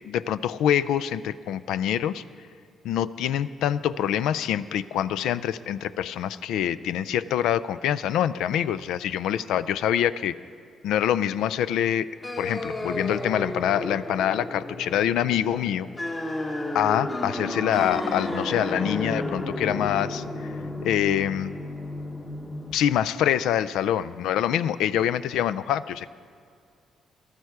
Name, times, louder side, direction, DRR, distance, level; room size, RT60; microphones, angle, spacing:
voice 1, 0.0-2.2 2.8-10.3 10.8-12.1 12.4-15.9 16.7-20.5 20.8-21.5 22.7-26.1, left 10 dB, 85° left, 16 dB, 0.3 m, -25 dB
sound 1, 12.2-22.7, left 1 dB, 30° left, 1.3 m, -32 dB
12.5 x 12.5 x 4.7 m, 2.3 s
cardioid pair, 90°, 0 cm